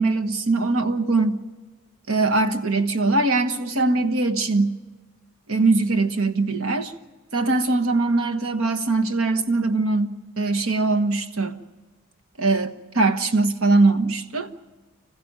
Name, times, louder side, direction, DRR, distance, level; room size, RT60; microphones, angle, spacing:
voice 1, 0.0-1.4 2.1-4.8 5.5-6.9 7.3-11.6 12.4-14.5, right 3 dB, 65° right, 8 dB, 1.4 m, -21 dB
26.0 x 15.5 x 8.9 m, 1.2 s
head